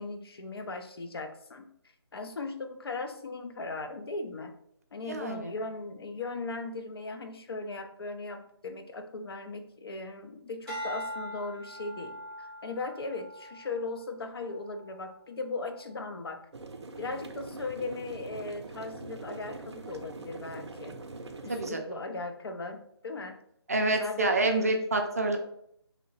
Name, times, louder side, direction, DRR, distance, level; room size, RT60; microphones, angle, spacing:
voice 1, 0.0-1.7 2.1-4.5 4.9-16.5 17.0-21.0 21.4-23.4 24.0-24.4, left 3 dB, 60° left, 6 dB, 0.4 m, -38 dB
voice 2, 5.1-5.5 21.5-21.8 23.7-25.4, right 2 dB, 35° right, 3 dB, 0.4 m, -27 dB
sound 1, 10.7-15.1 15.7-16.1, equal, 5° left, 1.0 m, -42 dB
sound 2, 16.5-21.7, right 3 dB, 90° right, 0.5 m, -43 dB
2.8 x 2.0 x 3.9 m, 0.71 s
hypercardioid pair, 170°, 14 cm